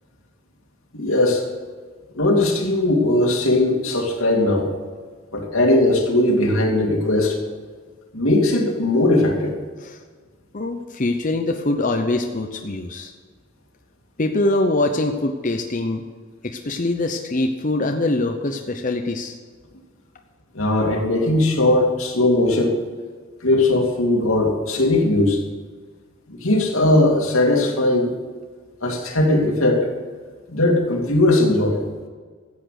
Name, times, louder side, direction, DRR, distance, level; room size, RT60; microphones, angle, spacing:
voice 1, 0.9-1.4 2.1-4.7 5.3-7.4 8.1-9.6 20.5-22.8 23.4-25.4 26.3-28.1 28.8-29.9 30.5-31.8, left 1 dB, 90° left, 0 dB, 2.6 m, -19 dB
voice 2, 10.5-13.1 14.2-16.0 16.4-19.3, left 2 dB, 40° left, 4 dB, 0.8 m, -23 dB
14.0 x 8.5 x 6.5 m, 1.5 s
head